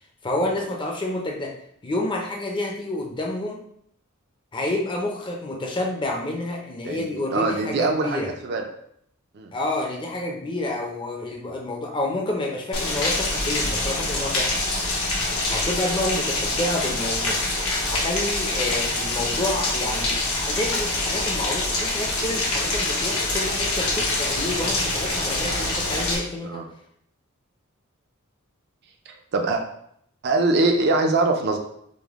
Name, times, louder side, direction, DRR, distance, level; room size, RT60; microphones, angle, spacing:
voice 1, 0.2-1.5 1.8-3.6 4.5-8.3 9.5-14.5 15.5-17.4 17.9-26.6, left 1 dB, 25° left, -1 dB, 0.5 m, -29 dB
voice 2, 7.3-8.6 9.3-9.5 26.4-26.6 29.3-29.6 30.2-31.6, right 3 dB, 50° right, 3 dB, 0.4 m, -22 dB
Rain, 12.7-26.2, left 2 dB, 85° left, 1.1 m, -25 dB
5.2 x 2.1 x 3.5 m, 0.69 s
head